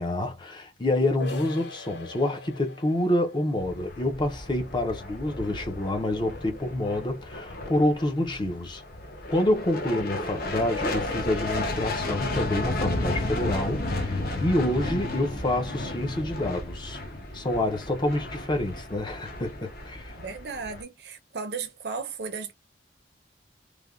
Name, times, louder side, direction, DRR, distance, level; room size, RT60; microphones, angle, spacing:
voice 1, 0.0-8.8 9.3-17.0 17.3-20.2, left 1 dB, 25° left, 0.5 m, -27 dB
sound 1, 1.2-6.7, left 3 dB, 90° left, 0.5 m, -45 dB
sound 2, 3.6-20.8, left 2 dB, 55° left, 0.7 m, -33 dB
voice 2, 20.1-22.5, right 5 dB, 65° right, 0.6 m, -35 dB
3.2 x 2.1 x 2.3 m
head